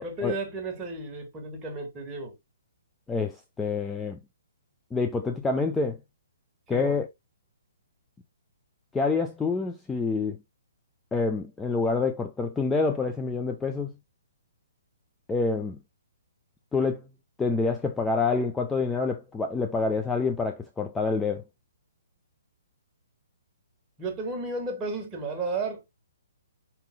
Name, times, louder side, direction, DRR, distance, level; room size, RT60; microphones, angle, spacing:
voice 1, 0.0-2.3 6.7-7.0 24.0-25.8, right 2 dB, 20° right, 1.8 m, -33 dB
voice 2, 3.1-4.2 4.9-6.0 6.7-7.1 8.9-10.4 11.1-14.0 15.3-15.8 16.7-17.1 17.4-21.4, left 4 dB, 10° left, 0.5 m, -27 dB
5.7 x 3.7 x 2.2 m
hypercardioid pair, 140°, 0 cm